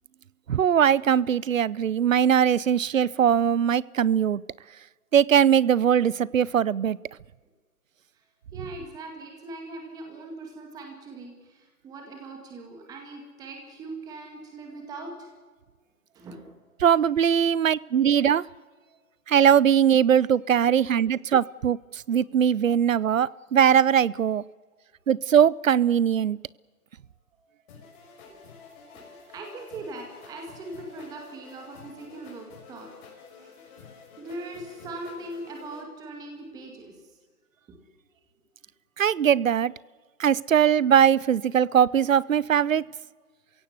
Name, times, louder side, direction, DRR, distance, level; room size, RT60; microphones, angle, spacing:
voice 1, 0.5-4.4 5.1-7.0 16.8-18.4 19.3-24.4 25.1-26.4 39.0-39.7 40.2-42.8, right 8 dB, 60° right, 23 dB, 0.7 m, -21 dB
voice 2, 8.5-15.3 16.1-16.6 18.9-19.0 27.4-27.5 28.2-28.4 28.9-32.9 33.3-33.6 34.2-37.1 37.7-37.8, right 2 dB, 10° right, 2 dB, 2.1 m, -41 dB
sound 1, 27.7-35.8, left 5 dB, 30° left, 5.5 m, -49 dB
29.0 x 16.5 x 8.0 m, 1.4 s
hypercardioid pair, 155°, 45 cm